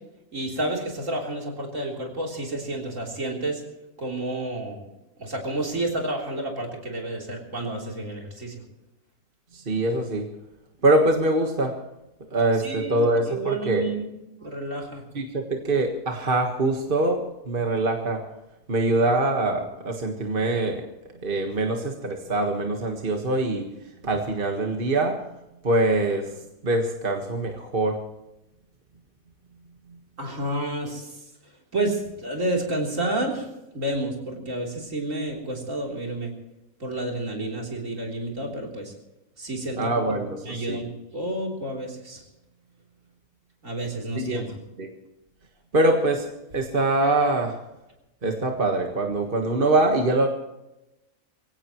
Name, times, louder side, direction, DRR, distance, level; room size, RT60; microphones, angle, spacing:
voice 1, 0.3-3.6 4.0-4.8 5.2-8.6 12.6-14.1 14.4-15.0 30.2-31.1 31.7-33.5 33.7-36.3 36.8-38.9 39.4-40.1 40.4-42.2 43.6-44.6, right 1 dB, 60° right, 0 dB, 4.0 m, -30 dB
voice 2, 9.5-10.3 10.8-11.7 12.3-13.8 15.1-18.2 18.7-20.8 21.2-23.7 24.0-25.2 25.6-26.3 26.6-28.0 39.8-40.8 44.2-44.4 44.8-44.9 45.7-46.3 46.5-47.5 48.2-50.3, right 2 dB, 40° right, 2 dB, 1.7 m, -23 dB
23.0 x 17.0 x 3.1 m, 0.94 s
omnidirectional pair, 1.5 m